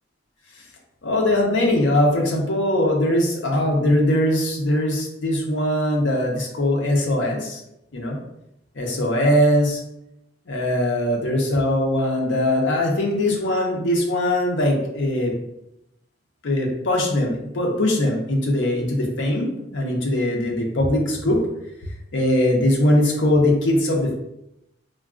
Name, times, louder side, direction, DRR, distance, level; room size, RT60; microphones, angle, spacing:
voice 1, 1.0-7.6 7.9-8.2 8.7-9.8 10.5-15.3 16.4-21.5 22.1-24.2, left 1 dB, 85° left, 0 dB, 0.6 m, -21 dB
3.4 x 2.2 x 2.4 m, 0.83 s
head